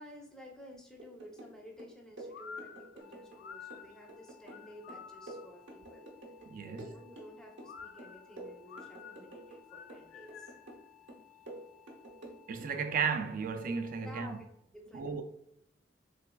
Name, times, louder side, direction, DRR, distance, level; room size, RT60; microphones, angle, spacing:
voice 1, 0.0-6.1 6.6-10.5 14.0-14.5 14.7-15.2, equal, 5° left, 0.6 m, -53 dB
sound 1, 1.0-1.5 1.8-3.4 3.7-6.5 6.8-7.7 8.0-9.6 9.9-10.8 11.1-12.7 13.0-13.2, right 1 dB, 80° right, 0.7 m, -49 dB
sound 2, 2.3-5.6 7.6-10.7, left 6 dB, 60° left, 0.3 m, -50 dB
sound 3, 3.0-14.4, left 13 dB, 85° left, 0.7 m, -61 dB
voice 2, 6.5-6.9 12.5-14.4 14.9-15.2, right 5 dB, 50° right, 0.3 m, -34 dB
3.3 x 3.2 x 2.2 m
head